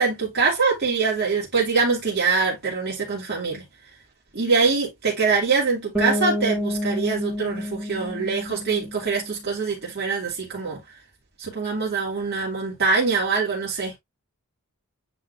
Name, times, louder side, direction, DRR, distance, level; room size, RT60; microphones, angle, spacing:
voice 1, 0.0-3.6 4.3-10.8 11.4-13.9, right 4 dB, 50° right, 2.9 m, -24 dB
Bass guitar, 5.9-9.7, equal, 10° right, 2.2 m, -29 dB
9.7 x 3.8 x 2.6 m
head